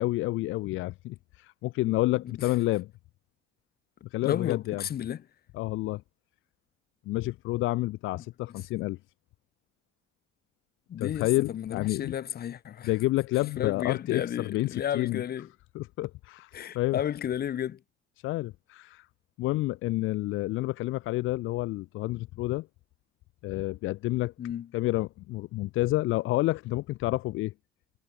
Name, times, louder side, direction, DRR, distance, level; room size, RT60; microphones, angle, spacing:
voice 1, 0.0-2.9 4.1-4.8 5.5-6.0 7.1-9.0 11.0-12.1 12.8-15.2 15.7-17.0 18.2-19.1 19.4-22.7 23.4-24.3 24.7-27.5, left 18 dB, 85° left, 0.5 m, -29 dB
voice 2, 4.2-5.2 8.1-8.2 8.5-8.9 10.9-12.9 13.6-15.5 16.5-17.8 24.4-24.7, left 10 dB, 50° left, 0.7 m, -33 dB
cardioid pair, 90°, 20 cm